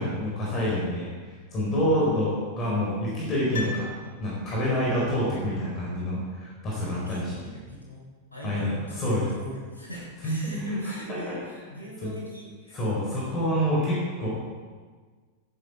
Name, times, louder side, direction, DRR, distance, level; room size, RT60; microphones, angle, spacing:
voice 1, 0.0-3.9 4.2-7.3 8.4-9.3 10.2-11.2 12.0-12.1 12.7-14.3, equal, 30° left, -5 dB, 4.5 m, -27 dB
Piano, 3.5-4.8 5.1-5.2, left 3 dB, 65° left, 2.2 m, -38 dB
voice 2, 6.8-8.0 8.3-12.8, left 1 dB, 80° left, -6 dB, 3.6 m, -41 dB
15.5 x 9.0 x 4.7 m, 1.5 s
figure-of-eight pair, 90°, 0 cm